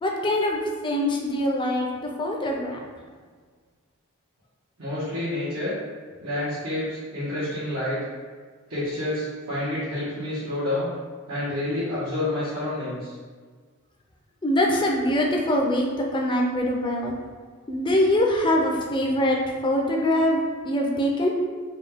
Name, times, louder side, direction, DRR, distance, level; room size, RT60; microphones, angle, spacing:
voice 1, 0.0-1.9 2.2-2.8 14.4-17.2 17.7-19.4 19.6-21.4, left 1 dB, 20° left, 0 dB, 0.5 m, -23 dB
voice 2, 4.8-5.7 6.2-8.0 8.7-10.9 11.3-13.1, left 1 dB, 90° right, -12 dB, 1.3 m, -28 dB
4.1 x 2.3 x 3.4 m, 1.5 s
head